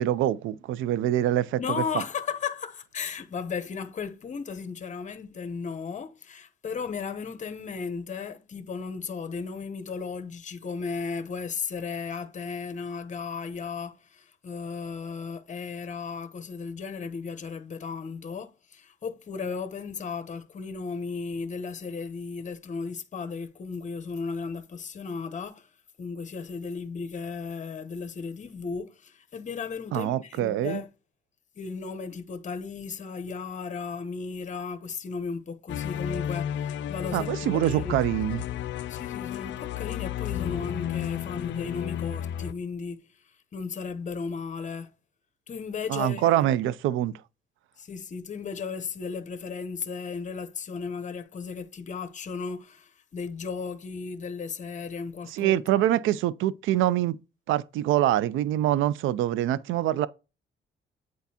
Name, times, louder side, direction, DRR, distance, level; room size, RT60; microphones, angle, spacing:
voice 1, 0.0-1.6 29.9-30.8 37.1-38.4 45.9-47.1 55.3-57.2 57.5-60.1, right 12 dB, 85° right, 0.4 m, -25 dB
voice 2, 1.6-25.7 26.0-30.9 31.6-38.0 38.9-44.9 45.5-46.5 47.8-55.6, left 5 dB, 40° left, 0.8 m, -35 dB
sound 1, 35.7-42.5, left 10 dB, 65° left, 0.4 m, -32 dB
8.2 x 4.5 x 2.8 m
cardioid pair, 90°, 20 cm